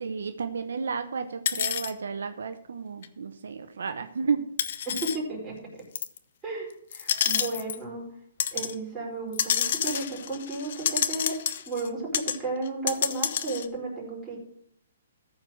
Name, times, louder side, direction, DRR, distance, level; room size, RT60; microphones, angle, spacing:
voice 1, 0.0-4.5, right 5 dB, 80° right, 9 dB, 0.8 m, -32 dB
sound 1, 1.5-1.9 3.0-3.1 4.6-5.2 6.0-6.2 6.9-7.8 8.4-8.7 9.3-11.9 12.1-12.4 12.7-13.7, left 9 dB, 55° left, 0.8 m, -28 dB
voice 2, 4.9-5.6 6.4-8.1 8.5-11.4 11.7-14.4, right 2 dB, 15° right, -5 dB, 4.7 m, -33 dB
14.0 x 4.7 x 6.3 m, 0.68 s
hypercardioid pair, 150°, 0 cm